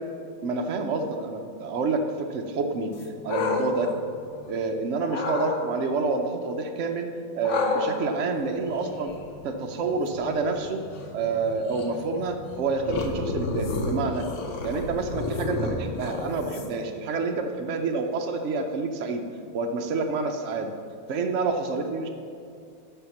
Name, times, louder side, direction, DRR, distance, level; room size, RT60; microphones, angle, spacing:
voice 1, 0.4-2.9 3.2-3.9 4.5-7.1 7.3-9.1 9.4-10.8 11.1-14.3 14.6-19.2 19.5-20.7 21.1-22.1, right 4 dB, 75° right, 4 dB, 0.6 m, -28 dB
sound 1, 2.9-4.6 5.1-5.6 7.4-16.9, left 3 dB, 55° left, 0.9 m, -32 dB
9.1 x 5.8 x 7.1 m, 2.4 s
omnidirectional pair, 2.1 m